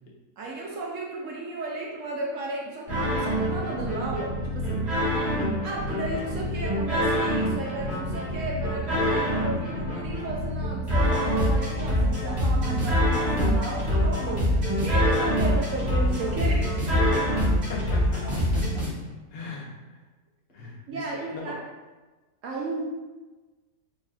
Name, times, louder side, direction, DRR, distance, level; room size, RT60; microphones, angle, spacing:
voice 1, 0.4-4.8 5.6-16.7 20.9-21.6 22.4-22.8, right 2 dB, 70° right, -2 dB, 0.8 m, -34 dB
sound 1, 2.9-18.9, equal, 45° right, 1.6 m, -25 dB
voice 2, 17.4-18.8 19.3-19.7 20.5-21.4, left 3 dB, 50° left, -3 dB, 0.8 m, -39 dB
4.7 x 2.9 x 2.3 m, 1.2 s
omnidirectional pair, 1.7 m